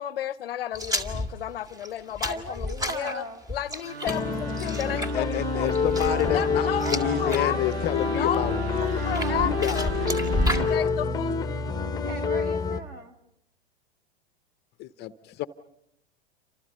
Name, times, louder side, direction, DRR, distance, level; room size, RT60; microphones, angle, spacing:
voice 1, 0.0-3.2 3.5-5.3 5.5-5.8 6.3-7.8 8.1-8.5 9.0-9.9 10.4-11.3, left 11 dB, 65° left, 0.9 m, -32 dB
sound 1, 0.7-7.4 7.8-8.3 8.9-10.7, equal, 10° right, 2.1 m, -32 dB
voice 2, 2.3-3.4 6.1-6.5 6.8-7.9 8.6-9.6 12.0-13.2, right 1 dB, 30° right, 3.4 m, -38 dB
sound 2, 3.8-10.7, right 6 dB, 75° right, 1.1 m, -35 dB
sound 3, 4.1-12.8, left 5 dB, 10° left, 1.3 m, -28 dB
voice 3, 4.6-9.1 9.4-10.1 14.8-15.5, left 13 dB, 30° left, 0.9 m, -30 dB
29.5 x 26.5 x 5.5 m
figure-of-eight pair, 100°, 32 cm